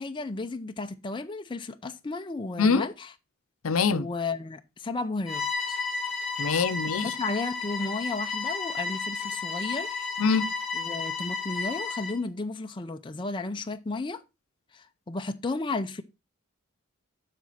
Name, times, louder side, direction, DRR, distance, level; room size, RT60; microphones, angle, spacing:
voice 1, 0.0-3.1 3.9-5.8 6.9-10.1 10.7-14.2 14.7-16.0, left 3 dB, 25° left, 0.5 m, -33 dB
voice 2, 3.6-4.1 6.4-7.1 10.2-10.5, left 5 dB, 85° left, 0.6 m, -24 dB
Bowed string instrument, 5.3-12.2, left 4 dB, 5° right, 2.8 m, -32 dB
7.5 x 5.9 x 4.1 m
head